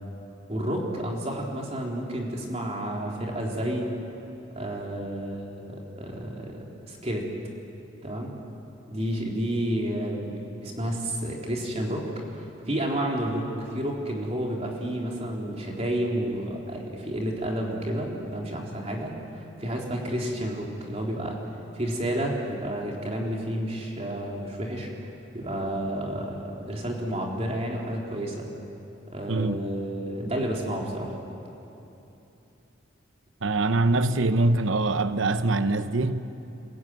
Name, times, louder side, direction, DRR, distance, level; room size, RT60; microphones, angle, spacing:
voice 1, 0.5-3.9 4.5-7.3 8.0-8.3 8.9-21.4 21.7-24.9 25.3-28.5 29.1-31.2, right 1 dB, 30° right, 3.7 m, -30 dB
voice 2, 29.3-29.6 33.4-36.2, right 2 dB, 80° right, 1.0 m, -23 dB
26.0 x 22.5 x 9.4 m
head